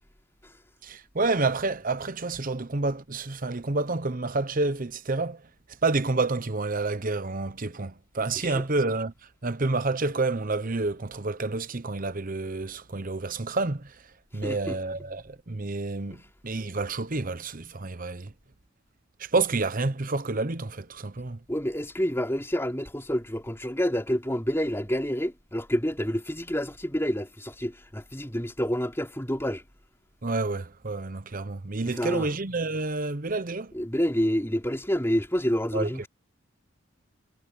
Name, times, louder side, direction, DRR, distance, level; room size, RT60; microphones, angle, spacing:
voice 1, 0.8-5.4 5.8-9.1 9.4-14.0 14.3-18.3 19.2-21.4 30.2-33.7 35.7-36.1, right 3 dB, 40° right, 1.0 m, -29 dB
voice 2, 14.4-14.8 21.5-29.6 31.8-32.3 33.7-36.1, equal, 10° left, 3.4 m, -28 dB
head